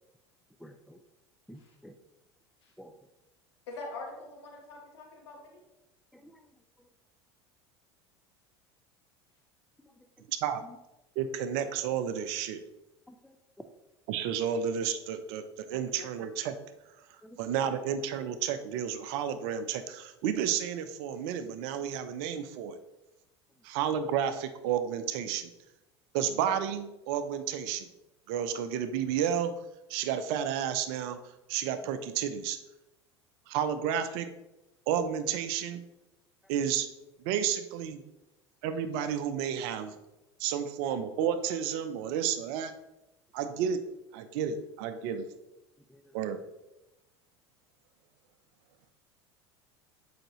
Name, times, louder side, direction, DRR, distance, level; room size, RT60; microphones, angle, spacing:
voice 1, 0.6-1.0 1.5-2.0 2.8-2.9 6.1-6.4 9.8-9.9 10.6-10.8 13.1-13.7 16.0-16.1 17.2-17.4 45.9-46.2, equal, ahead, 7 dB, 0.5 m, -51 dB
voice 2, 3.7-5.6, left 2 dB, 75° left, -1 dB, 1.9 m, -44 dB
voice 3, 10.3-10.6 11.2-12.6 14.1-16.6 17.4-22.8 23.6-25.5 26.1-27.9 28.3-29.5 29.9-31.2 31.5-32.6 33.5-34.3 34.9-35.8 36.5-36.9 37.2-38.0 38.6-39.9 40.4-42.7 43.3-43.8 44.1-45.3 46.1-46.4, right 8 dB, 60° right, 10 dB, 0.7 m, -31 dB
7.6 x 5.0 x 3.1 m, 0.94 s
hypercardioid pair, 75°, 14 cm